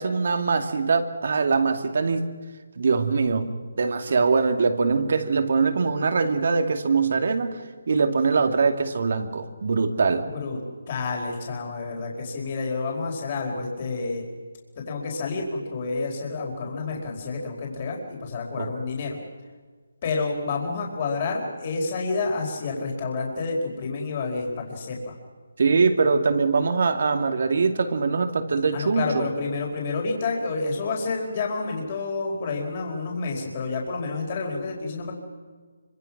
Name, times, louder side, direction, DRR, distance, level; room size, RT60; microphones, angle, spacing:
voice 1, 0.0-2.2 2.8-7.6 7.9-10.2 18.6-18.7 25.6-29.3, right 4 dB, 55° right, 7 dB, 2.6 m, -22 dB
voice 2, 10.9-14.3 14.8-19.2 20.0-25.1 28.7-35.1, left 3 dB, 35° left, 0 dB, 4.7 m, -29 dB
26.0 x 25.0 x 6.1 m, 1.5 s
hypercardioid pair, 165°, 0 cm